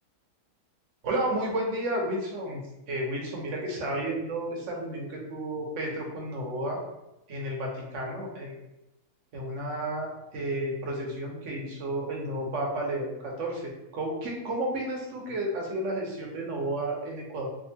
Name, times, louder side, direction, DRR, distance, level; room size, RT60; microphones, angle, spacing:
voice 1, 1.0-2.6 2.9-6.8 7.3-8.6 9.3-17.5, right 1 dB, 60° right, -1 dB, 1.0 m, -32 dB
3.5 x 2.6 x 2.7 m, 0.95 s
omnidirectional pair, 1.7 m